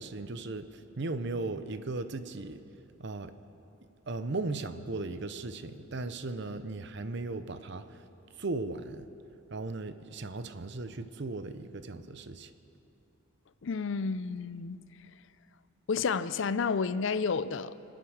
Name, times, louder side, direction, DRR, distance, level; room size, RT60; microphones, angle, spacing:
voice 1, 0.0-2.6 3.0-3.3 4.1-8.1 8.3-9.1 9.5-12.5, right 3 dB, 55° right, 0.7 m, -37 dB
voice 2, 13.6-14.8 15.9-17.7, left 5 dB, 60° left, 0.4 m, -30 dB
25.0 x 8.8 x 6.4 m
head